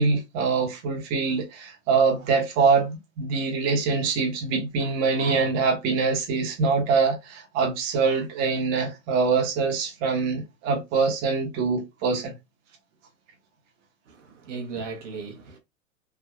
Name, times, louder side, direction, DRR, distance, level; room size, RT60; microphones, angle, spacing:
voice 1, 0.0-12.3, right 4 dB, 35° right, 1.0 m, -24 dB
voice 2, 14.1-15.6, right 4 dB, 65° right, 1.0 m, -36 dB
3.5 x 2.5 x 2.3 m
hypercardioid pair, 125°, 40 cm